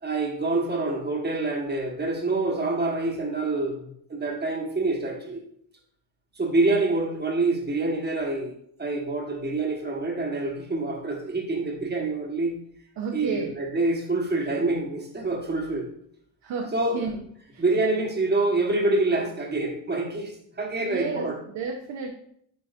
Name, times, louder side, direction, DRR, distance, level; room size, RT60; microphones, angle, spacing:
voice 1, 0.0-5.4 6.3-8.5 8.8-12.5 13.1-15.9 16.7-17.0 17.6-21.3, right 2 dB, 25° right, 1 dB, 1.3 m, -26 dB
voice 2, 13.0-13.5 16.4-17.6 20.8-22.1, right 5 dB, 70° right, 2 dB, 0.9 m, -32 dB
10.0 x 4.0 x 2.5 m, 0.68 s
cardioid pair, 120°, 44 cm